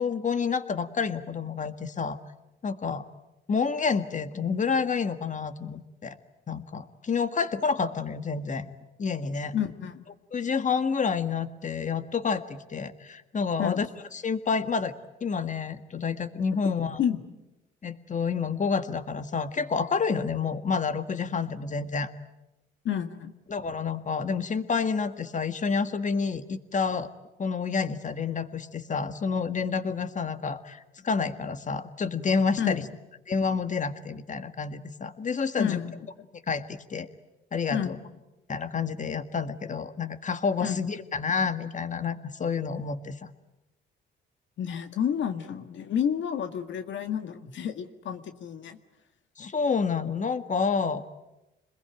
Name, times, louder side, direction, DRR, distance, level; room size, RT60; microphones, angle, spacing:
voice 1, 0.0-2.2 2.6-3.0 3.5-6.2 6.5-8.7 9.0-9.6 10.3-13.9 14.2-14.9 15.2-17.0 17.8-22.1 23.5-27.1 27.4-32.8 33.3-35.8 36.5-37.1 37.5-38.0 38.5-43.3 49.4-51.0, left 5 dB, 40° left, 10 dB, 1.8 m, -29 dB
voice 2, 9.5-10.1 13.6-13.8 17.0-17.4 22.8-23.3 32.6-32.8 35.6-36.1 37.7-38.0 40.6-40.8 44.6-48.8, left 8 dB, 70° left, 7 dB, 1.9 m, -30 dB
27.5 x 21.0 x 9.2 m, 0.97 s
cardioid pair, 90°, 20 cm